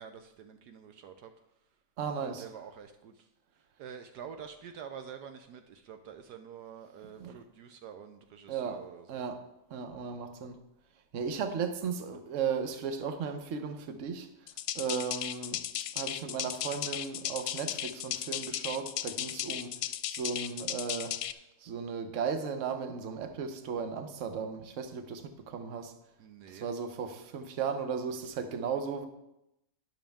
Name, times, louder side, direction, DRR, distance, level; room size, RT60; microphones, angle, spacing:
voice 1, 0.0-1.3 2.2-3.3 3.8-9.2 26.2-26.7, right 7 dB, 75° right, 7 dB, 1.2 m, -47 dB
voice 2, 2.0-2.4 7.2-7.3 8.5-8.8 9.1-9.4 9.7-10.6 11.1-14.3 14.7-15.6 15.9-19.7 20.1-21.2 21.6-25.9 26.6-29.1, right 6 dB, 50° right, 8 dB, 1.2 m, -35 dB
sound 1, 14.5-21.3, left 11 dB, 80° left, 1.1 m, -36 dB
12.5 x 10.0 x 3.5 m, 0.86 s
omnidirectional pair, 1.8 m